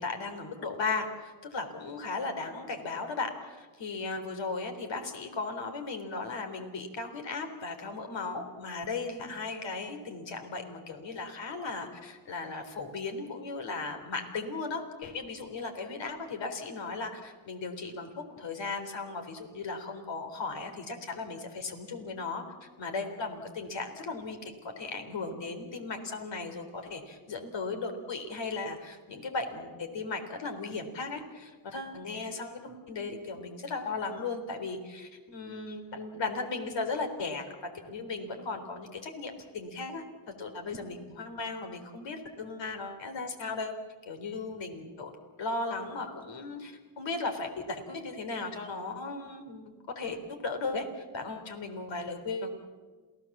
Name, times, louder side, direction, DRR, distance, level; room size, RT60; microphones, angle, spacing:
voice 1, 0.0-43.7 44.1-45.1 45.4-52.5, left 3 dB, 60° left, 6 dB, 3.9 m, -36 dB
28.0 x 17.0 x 7.4 m, 1.4 s
cardioid pair, 85°, 49 cm